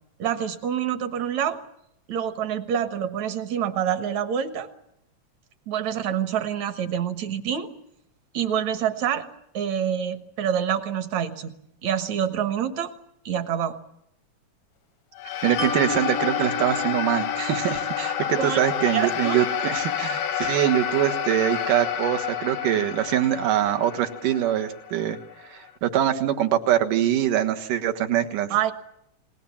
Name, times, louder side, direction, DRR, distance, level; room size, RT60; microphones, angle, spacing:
voice 1, 0.2-1.6 2.1-4.7 5.7-7.7 8.3-9.3 9.5-11.6 11.8-12.9 13.3-13.8 18.4-19.4 28.5-28.7, right 9 dB, 65° right, 9 dB, 2.6 m, -26 dB
sound 1, 15.2-25.7, left 9 dB, 90° left, 3.0 m, -29 dB
voice 2, 15.4-25.2 25.5-28.7, right 11 dB, 85° right, 7 dB, 3.1 m, -24 dB
Mallet percussion, 15.6-18.9, left 2 dB, 65° left, 1.0 m, -34 dB
29.0 x 21.0 x 7.3 m, 0.79 s
omnidirectional pair, 3.7 m